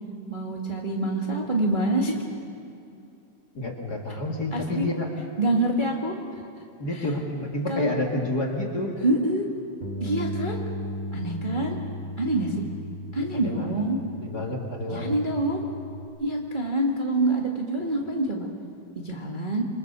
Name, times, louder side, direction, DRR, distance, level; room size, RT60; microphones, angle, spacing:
voice 1, 0.3-2.2 4.5-4.9 5.4-6.1 7.7-7.9 9.0-9.4 10.0-10.6 11.1-11.8 12.2-12.5 13.1-14.0 14.9-15.6 16.2-18.5 19.0-19.6, right 2 dB, 20° right, -1 dB, 1.7 m, -26 dB
voice 2, 3.5-5.1 6.8-8.9 13.1-13.8 14.2-15.2, left 1 dB, 35° left, 1 dB, 2.3 m, -29 dB
Bass guitar, 9.8-16.1, equal, 55° right, 4.1 m, -36 dB
29.0 x 24.0 x 6.8 m, 2.6 s
omnidirectional pair, 3.3 m